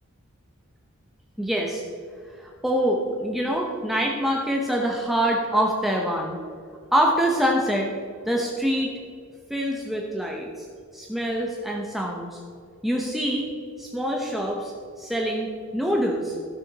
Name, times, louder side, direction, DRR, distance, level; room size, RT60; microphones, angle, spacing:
voice 1, 1.4-1.8 2.2-6.4 6.9-7.9 8.3-8.9 9.5-10.7 10.9-12.4 12.8-13.5 13.8-16.4, equal, ahead, -1 dB, 0.9 m, -25 dB
15.0 x 6.4 x 4.1 m, 2.3 s
head